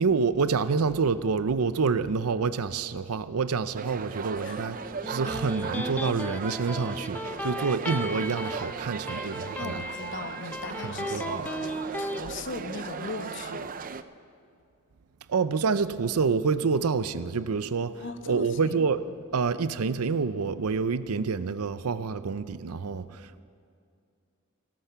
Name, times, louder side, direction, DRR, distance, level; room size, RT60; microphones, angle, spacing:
voice 1, 0.0-4.8 5.1-9.8 10.8-11.5 15.3-19.0 19.3-23.4, right 5 dB, 85° right, 14 dB, 0.6 m, -27 dB
sound 1, 3.8-14.0, right 6 dB, 40° right, 0.5 m, -37 dB
voice 2, 4.1-4.9 5.2-5.3 9.6-13.7 18.0-18.8, left 3 dB, 60° left, 9 dB, 0.9 m, -39 dB
Electric guitar, 4.8-12.2, left 1 dB, 5° left, 0.6 m, -36 dB
17.5 x 13.0 x 5.8 m, 2.4 s
head